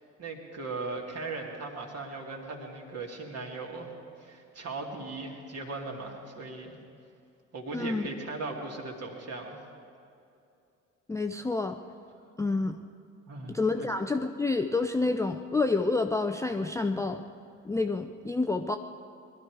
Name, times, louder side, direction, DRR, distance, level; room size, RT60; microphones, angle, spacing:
voice 1, 0.2-3.9 4.2-6.7 7.5-9.5 13.3-13.9, right 3 dB, 45° right, 1 dB, 2.5 m, -38 dB
voice 2, 7.7-8.1 11.1-11.8 12.4-12.8 13.5-17.2 17.6-18.8, left 3 dB, 10° left, 6 dB, 0.5 m, -28 dB
21.5 x 12.5 x 4.8 m, 2.6 s
figure-of-eight pair, 50°, 37 cm